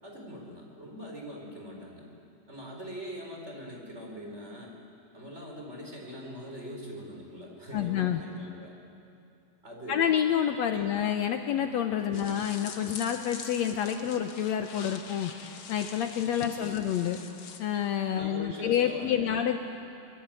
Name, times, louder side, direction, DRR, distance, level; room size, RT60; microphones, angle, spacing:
voice 1, 0.0-2.1 2.5-4.8 5.1-8.7 9.6-10.1 10.7-10.9 12.1-12.4 16.4-16.8 18.1-19.4, equal, 15° right, 0 dB, 4.5 m, -42 dB
voice 2, 7.7-8.2 9.9-15.3 15.7-17.2 17.6-19.6, left 9 dB, 85° left, 6 dB, 1.5 m, -28 dB
sound 1, 12.1-17.6, left 6 dB, 50° left, 1.7 m, -44 dB
25.0 x 23.0 x 9.1 m, 2.6 s
omnidirectional pair, 4.3 m